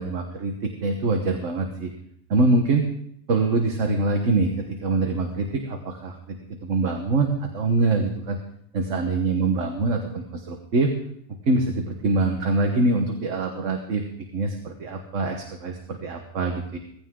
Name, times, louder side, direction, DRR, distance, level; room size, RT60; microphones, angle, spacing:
voice 1, 0.0-1.9 2.3-2.8 3.3-4.5 4.8-6.4 6.6-8.4 8.7-10.9 11.5-14.0 14.3-16.8, right 3 dB, 65° right, 3 dB, 1.6 m, -24 dB
17.0 x 15.5 x 3.8 m, 0.71 s
omnidirectional pair, 1.4 m